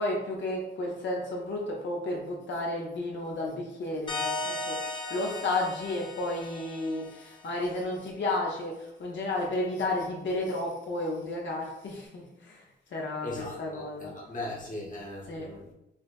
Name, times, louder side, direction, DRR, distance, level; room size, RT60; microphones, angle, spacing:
voice 1, 0.0-14.1 15.3-15.5, left 2 dB, 80° left, -2 dB, 0.7 m, -32 dB
sound 1, 4.1-7.5, left 2 dB, 25° left, 0.6 m, -36 dB
voice 2, 13.2-13.9 14.1-15.7, left 1 dB, 45° left, -3 dB, 1.0 m, -38 dB
4.9 x 2.1 x 2.4 m, 0.85 s
wide cardioid pair, 115°, 19 cm